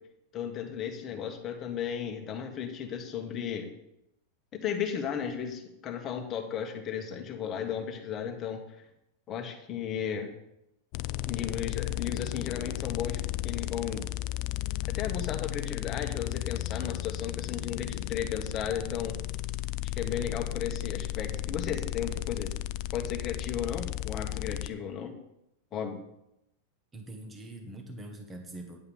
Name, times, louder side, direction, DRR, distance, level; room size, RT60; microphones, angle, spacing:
voice 1, 0.3-3.7 4.6-8.6 9.3-10.3 11.3-13.2 13.4-14.1 14.9-19.2 19.9-22.5 22.9-25.1 25.7-26.0, left 8 dB, 25° left, 3 dB, 1.5 m, -35 dB
sound 1, 10.9-24.7, left 15 dB, 40° left, 0.4 m, -34 dB
voice 2, 26.9-28.8, right 1 dB, 10° right, 3 dB, 1.3 m, -43 dB
9.8 x 5.6 x 7.1 m, 0.82 s
supercardioid pair, 165°, 0 cm